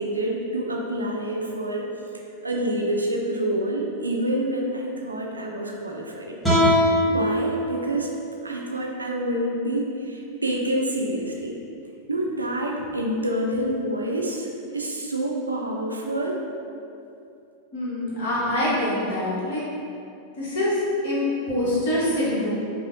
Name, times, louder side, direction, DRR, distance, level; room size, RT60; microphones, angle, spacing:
voice 1, 0.0-1.9 2.4-6.4 7.0-8.1 8.4-11.6 12.1-14.5 14.7-16.4, right 1 dB, 80° right, -1 dB, 0.4 m, -27 dB
sound 1, 6.4-9.6, equal, 5° left, 1.2 m, -24 dB
voice 2, 17.7-19.6 20.4-22.5, left 1 dB, 60° left, -7 dB, 1.1 m, -25 dB
5.0 x 2.0 x 2.5 m, 2.6 s
figure-of-eight pair, 90°, 0 cm